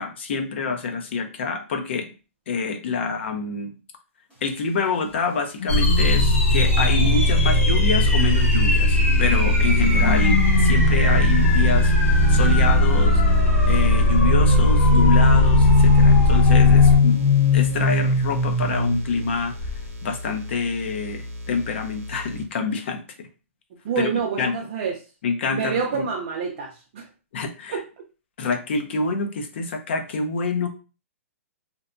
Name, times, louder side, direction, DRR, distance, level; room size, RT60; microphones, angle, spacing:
voice 1, 0.0-2.1 2.5-3.7 4.4-11.9 12.3-13.2 13.7-17.2 17.5-19.6 20.0-23.3 24.0-24.1 24.4-24.6 25.2-26.0 27.3-27.8 28.4-30.7, left 4 dB, 50° left, 0.5 m, -26 dB
sound 1, 5.6-9.2 9.8-13.1 14.1-19.3 19.6-19.9, left 3 dB, 15° left, 1.0 m, -21 dB
sound 2, 5.7-17.0, left 1 dB, 75° left, 1.1 m, -18 dB
sound 3, 6.6-22.4, equal, 75° right, 0.7 m, -32 dB
voice 2, 23.8-25.0 25.5-27.1 27.7-27.8, right 6 dB, 40° right, 0.5 m, -27 dB
2.6 x 2.2 x 2.5 m
hypercardioid pair, 165°, 8 cm